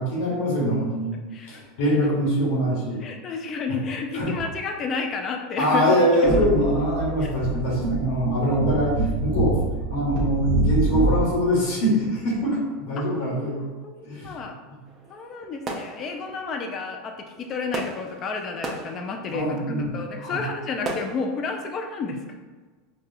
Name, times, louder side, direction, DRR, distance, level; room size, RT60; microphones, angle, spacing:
voice 1, 0.0-1.2 1.5-3.0 4.1-4.3 5.6-9.6 9.9-13.6 14.0-14.4 19.3-19.9 20.2-20.4, equal, 75° left, -5 dB, 1.2 m, -23 dB
voice 2, 1.3-1.6 3.0-5.9 6.2-6.5 7.2-7.3 13.8-14.5 15.1-19.6 19.9-22.2, left 4 dB, 40° left, 4 dB, 0.5 m, -31 dB
sound 1, 6.2-11.3, right 3 dB, 50° right, 0.9 m, -25 dB
sound 2, 14.9-21.3, right 2 dB, 35° right, 0.6 m, -38 dB
4.0 x 2.3 x 2.6 m, 1.4 s
hypercardioid pair, 105°, 0 cm